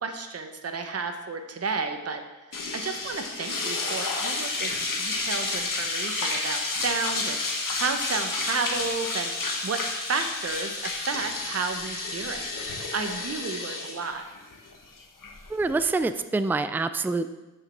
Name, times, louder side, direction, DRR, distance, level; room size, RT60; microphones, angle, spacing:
voice 1, 0.0-2.2 2.5-14.3, right 4 dB, 50° right, 6 dB, 0.9 m, -32 dB
sound 1, 2.5-16.1, left 3 dB, 75° left, 1.6 m, -31 dB
voice 2, 15.5-17.3, right 3 dB, 5° right, 11 dB, 0.3 m, -26 dB
7.4 x 6.6 x 6.8 m, 1.1 s
wide cardioid pair, 120°, 33 cm